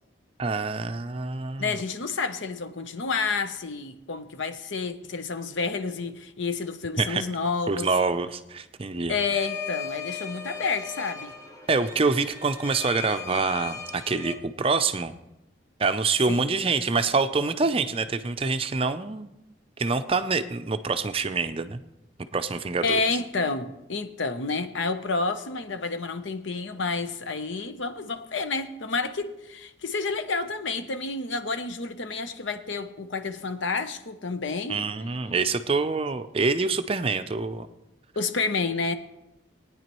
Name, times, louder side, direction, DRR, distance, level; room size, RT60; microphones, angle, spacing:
voice 1, 0.4-1.8 7.0-7.2 7.7-9.2 11.7-15.1 15.8-19.3 19.8-21.8 22.3-23.0 34.7-37.7, right 4 dB, 30° right, 10 dB, 0.5 m, -26 dB
voice 2, 1.6-7.9 9.1-11.3 16.3-16.5 22.8-34.8 38.2-39.0, left 4 dB, 80° left, 9 dB, 0.8 m, -29 dB
sound 1, 9.3-14.3, left 6 dB, 20° left, 1.1 m, -37 dB
19.0 x 9.6 x 3.0 m, 0.94 s
head